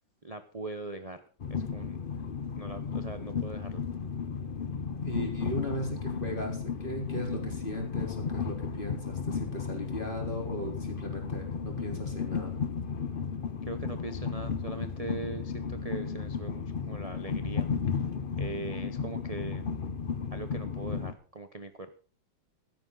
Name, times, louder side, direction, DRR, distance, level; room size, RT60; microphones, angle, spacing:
voice 1, 0.2-1.2 1.5-2.0 2.6-3.8 13.7-17.7 18.4-19.6 20.3-21.9, right 3 dB, 45° right, 9 dB, 0.5 m, -40 dB
Train, 1.4-21.1, left 6 dB, 90° left, 0.4 m, -34 dB
voice 2, 5.0-12.6, left 1 dB, 25° left, 2 dB, 3.8 m, -36 dB
16.0 x 13.5 x 3.9 m, 0.39 s
omnidirectional pair, 2.2 m